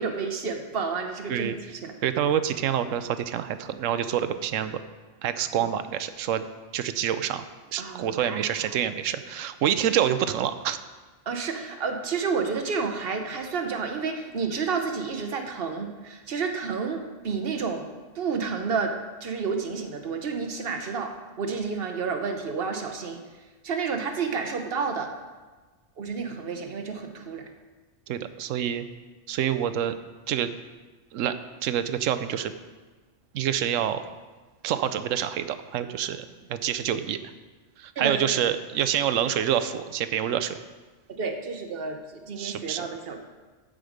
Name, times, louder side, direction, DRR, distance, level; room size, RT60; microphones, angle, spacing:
voice 1, 0.0-1.5 1.8-1.9 7.8-8.4 11.3-17.9 18.1-18.9 19.2-23.2 23.6-25.1 26.0-27.4 38.0-38.2 41.1-43.2, right 5 dB, 50° right, 5 dB, 1.1 m, -30 dB
voice 2, 2.0-4.8 5.2-6.4 6.7-7.5 7.7-10.8 28.1-28.8 29.3-29.9 30.3-30.5 31.1-31.3 31.6-32.5 33.3-34.0 34.6-37.2 37.8-40.6 42.4-42.9, right 9 dB, 85° right, 11 dB, 1.0 m, -27 dB
14.5 x 5.2 x 5.0 m, 1.3 s
omnidirectional pair, 1.3 m